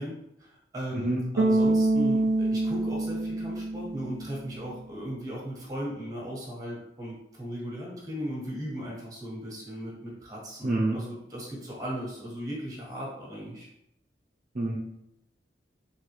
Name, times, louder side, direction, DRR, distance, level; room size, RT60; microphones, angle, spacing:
voice 1, 0.0-13.7, equal, 20° right, -4 dB, 1.4 m, -37 dB
Bass guitar, 1.4-4.5, right 2 dB, 80° right, 0.4 m, -26 dB
voice 2, 10.6-11.0 14.5-14.8, right 2 dB, 45° right, -5 dB, 0.7 m, -27 dB
3.9 x 3.3 x 3.2 m, 0.80 s
head